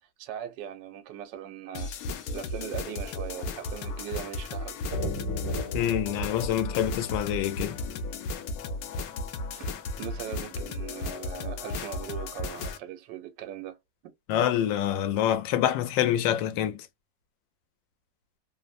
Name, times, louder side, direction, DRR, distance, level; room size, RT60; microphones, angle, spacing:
voice 1, 0.2-1.9 2.3-4.8 9.5-13.8 14.0-14.1, right 10 dB, 80° right, 1.2 m, -40 dB
sound 1, 1.7-12.8, left 2 dB, 70° left, 0.9 m, -35 dB
sound 2, 4.9-8.5, left 2 dB, 10° right, 1.0 m, -36 dB
voice 2, 5.7-7.8 14.3-16.8, left 11 dB, 85° left, 1.3 m, -26 dB
3.1 x 2.0 x 2.3 m
omnidirectional pair, 1.9 m